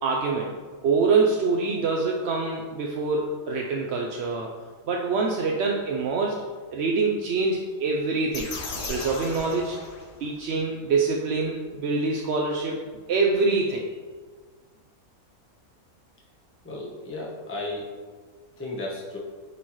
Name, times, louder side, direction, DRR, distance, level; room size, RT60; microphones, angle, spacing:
voice 1, 0.0-4.5 4.9-6.4 6.7-8.5 8.9-9.8 10.2-12.8 13.1-13.9, right 4 dB, 60° right, 0 dB, 0.7 m, -25 dB
sound 1, 8.3-10.5, left 3 dB, 60° left, 1.3 m, -36 dB
voice 2, 16.6-17.9 18.6-19.2, left 2 dB, 10° left, -4 dB, 0.9 m, -34 dB
9.2 x 4.2 x 3.1 m, 1.5 s
omnidirectional pair, 1.6 m